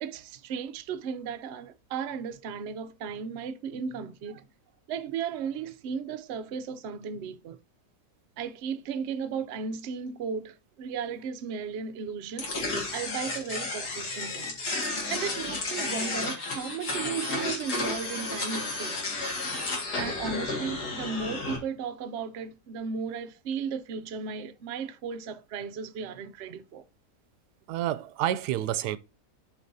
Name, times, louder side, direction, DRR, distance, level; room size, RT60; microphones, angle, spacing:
voice 1, 0.0-4.4 4.9-7.6 8.4-12.5 12.9-14.6 15.1-19.0 20.0-26.8, right 6 dB, 60° right, 0.7 m, -35 dB
sound 1, 12.4-21.6, left 3 dB, 80° left, 2.4 m, -32 dB
voice 2, 27.7-29.0, right 12 dB, 90° right, 1.1 m, -29 dB
11.5 x 4.6 x 2.6 m
omnidirectional pair, 1.7 m